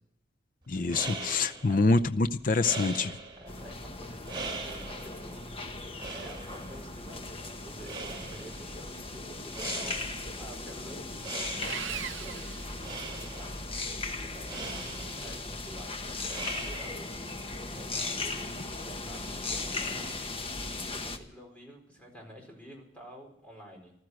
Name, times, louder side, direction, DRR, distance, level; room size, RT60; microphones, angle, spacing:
voice 1, 0.7-3.1, left 3 dB, 45° left, 9 dB, 0.6 m, -26 dB
sound 1, 0.7-17.3, right 3 dB, 25° right, 3.4 m, -43 dB
voice 2, 3.4-5.4 6.1-13.5 13.9-16.4 16.6-17.4 17.7-20.1 21.0-23.9, equal, 5° left, 0 dB, 4.6 m, -49 dB
sound 2, 3.5-21.2, left 3 dB, 30° left, 1.2 m, -38 dB
Sawing, 11.6-13.5, right 9 dB, 75° right, 0.7 m, -40 dB
15.5 x 13.0 x 6.3 m, 0.72 s
head